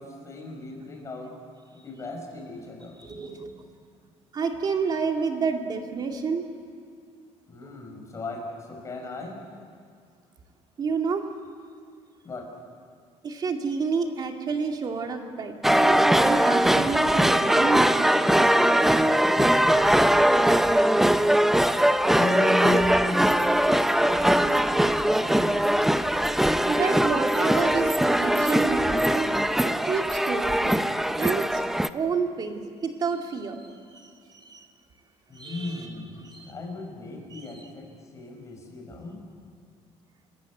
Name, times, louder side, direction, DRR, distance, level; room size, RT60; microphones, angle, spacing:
voice 1, 0.0-1.3 1.7-3.0 7.5-9.4 12.2-12.5 16.7-17.1 19.2-19.7 22.1-23.2 23.8-25.6 35.3-39.2, left 2 dB, 25° left, 0 dB, 5.6 m, -35 dB
voice 2, 3.0-3.7 4.3-6.5 10.8-11.2 13.2-18.6 26.7-29.3 29.6-30.7 31.2-31.6 31.9-33.6 33.9-34.7 35.3-35.9 36.2-36.5 37.3-37.7, right 5 dB, 35° right, 3 dB, 2.2 m, -29 dB
sound 1, 15.6-31.9, right 1 dB, 5° right, 0.6 m, -21 dB
29.0 x 14.5 x 9.6 m, 2.2 s
cardioid pair, 155°, 12 cm